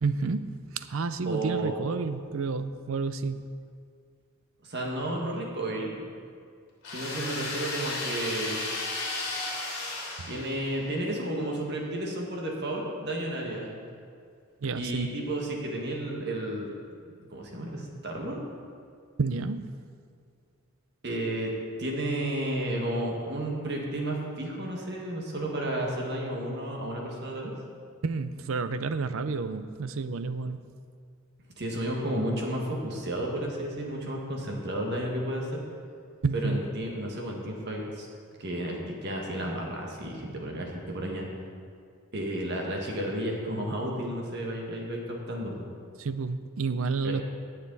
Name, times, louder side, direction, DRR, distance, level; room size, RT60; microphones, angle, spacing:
voice 1, 0.0-3.4 10.2-10.4 14.6-15.1 19.2-19.7 28.0-30.6 36.2-36.6 46.0-47.2, right 4 dB, 65° right, 12 dB, 0.5 m, -30 dB
voice 2, 1.3-1.8 4.6-6.1 6.9-8.6 10.3-13.7 14.7-16.7 17.1-18.4 21.0-21.5 21.8-27.5 31.6-35.6 36.3-38.1 38.4-41.3 42.1-45.7 47.0-47.1, right 1 dB, 50° right, -1 dB, 1.8 m, -32 dB
sound 1, 6.8-10.9, left 2 dB, 50° left, 2.9 m, -34 dB
19.0 x 6.7 x 4.1 m, 2.3 s
head